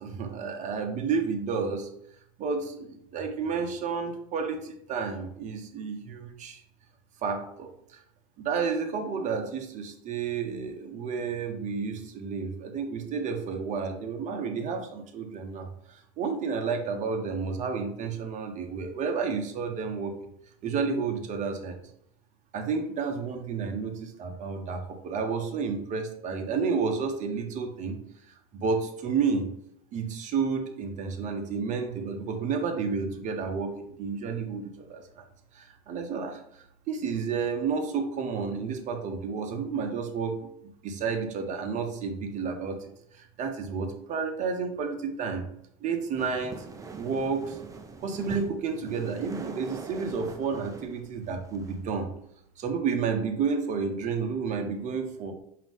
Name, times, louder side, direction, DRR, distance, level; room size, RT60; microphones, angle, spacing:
voice 1, 0.0-1.9 2.4-6.6 7.2-7.7 8.4-20.2 20.6-21.8 22.5-28.0 28.3-29.5 29.9-35.2 35.5-45.4 45.8-46.6 47.0-47.6 48.0-52.1 52.6-55.3, right 5 dB, 40° right, 5 dB, 0.9 m, -31 dB
sound 1, 46.2-51.9, right 4 dB, 15° right, 0.5 m, -43 dB
5.0 x 2.8 x 3.5 m, 0.72 s
hypercardioid pair, 100°, 19 cm